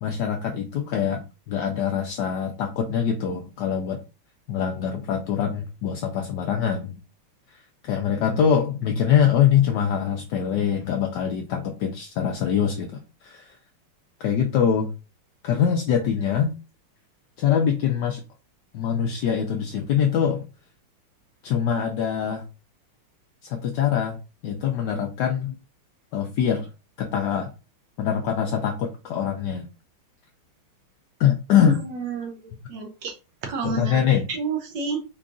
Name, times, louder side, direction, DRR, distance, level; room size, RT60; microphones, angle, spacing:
voice 1, 0.0-4.0 4.5-7.0 7.8-13.6 14.2-14.9 15.4-16.5 17.4-18.2 18.7-20.5 21.4-22.4 23.4-25.5 26.1-26.7 27.0-27.5 28.0-29.7 31.2-31.8 33.6-34.2, left 8 dB, 75° left, 3 dB, 1.0 m, -23 dB
voice 2, 31.6-33.2 33.4-34.0 34.3-35.0, right 4 dB, 65° right, 4 dB, 1.3 m, -30 dB
4.7 x 2.4 x 3.7 m, 0.31 s
omnidirectional pair, 2.3 m